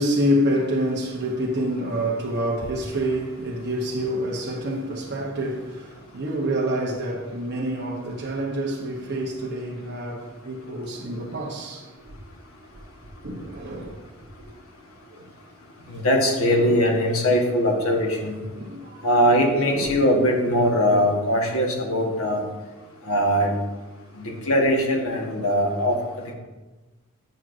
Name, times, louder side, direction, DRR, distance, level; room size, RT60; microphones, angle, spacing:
voice 1, 0.0-12.2 13.2-14.0 15.1-15.3 16.5-16.8 18.5-19.1 19.6-20.0, equal, 50° right, 0.8 m, -27 dB
voice 2, 15.9-18.3 19.0-22.4 23.1-23.5 24.2-26.3, equal, 80° left, 1.2 m, -21 dB
9.0 x 6.0 x 2.5 m
head